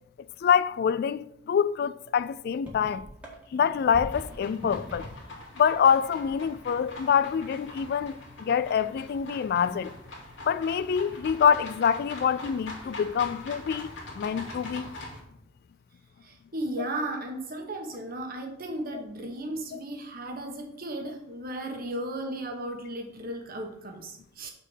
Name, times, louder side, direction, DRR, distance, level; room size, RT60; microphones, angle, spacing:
voice 1, 0.4-3.0 3.5-5.1 5.6-9.9 10.5-14.9 18.9-19.0 19.7-19.8, left 7 dB, 55° left, 0.3 m, -26 dB
sound 1, 2.2-2.3 2.5-5.4 5.7-6.7 7.0-7.3, equal, 10° right, 1.9 m, -43 dB
sound 2, 4.1-15.2, left 2 dB, 90° left, 2.4 m, -43 dB
voice 2, 16.2-24.5, right 1 dB, 50° right, 1.3 m, -35 dB
6.3 x 4.5 x 6.3 m
head